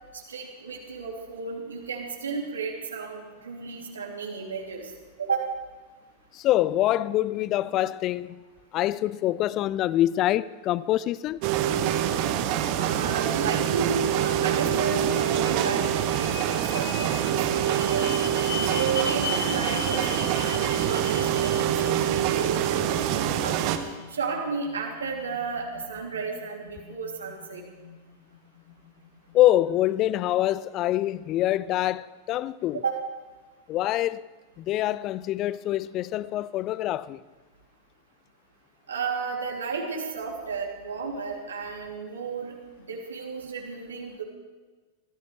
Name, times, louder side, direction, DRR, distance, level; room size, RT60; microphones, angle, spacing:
voice 1, 0.1-4.9 5.2-5.5 12.7-17.4 17.6-18.1 18.7-23.6 24.1-27.6 32.7-32.9 38.9-44.2, right 5 dB, 70° right, 3.1 m, -33 dB
voice 2, 6.3-8.4 8.7-11.4 29.3-32.8 33.7-34.3 34.6-37.2, left 14 dB, 35° left, 0.5 m, -25 dB
sound 1, 11.4-23.8, right 10 dB, 45° right, 1.3 m, -25 dB
sound 2, 12.5-29.7, left 6 dB, 70° left, 1.5 m, -40 dB
24.0 x 15.5 x 3.4 m
figure-of-eight pair, 90°, 0 cm